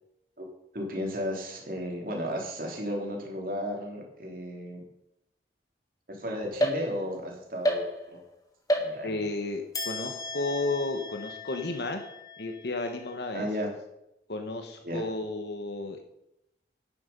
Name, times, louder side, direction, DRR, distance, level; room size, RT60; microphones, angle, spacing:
voice 1, 0.7-4.8 6.1-8.2 8.8-9.2 13.3-13.7 14.8-15.0, equal, 50° right, 0 dB, 3.0 m, -34 dB
sound 1, 6.6-7.2 7.6-8.3 8.7-9.3 9.7-13.2, equal, 20° left, 1.6 m, -33 dB
voice 2, 9.0-12.0 12.4-13.5 14.3-16.0, left 2 dB, 75° left, 5 dB, 1.2 m, -33 dB
10.5 x 9.5 x 5.4 m, 0.84 s
head